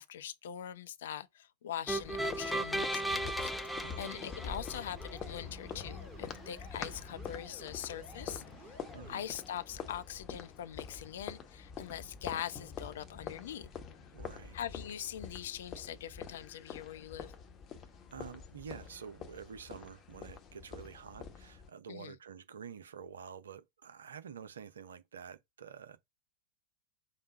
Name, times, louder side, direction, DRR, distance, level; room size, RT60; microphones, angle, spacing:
voice 1, 0.0-8.8 9.1-13.7 14.5-17.3 21.9-22.2, left 10 dB, 60° left, 0.6 m, -42 dB
sound 1, 1.9-21.7, left 6 dB, 30° left, 0.8 m, -46 dB
sound 2, 1.9-5.1, right 1 dB, 5° left, 0.5 m, -36 dB
sound 3, 3.4-9.2, right 2 dB, 25° right, 1.7 m, -54 dB
voice 2, 3.8-4.1 8.9-9.2 14.1-14.6 18.1-26.0, right 7 dB, 65° right, 0.7 m, -48 dB
5.3 x 2.2 x 4.1 m
figure-of-eight pair, 90°, 0 cm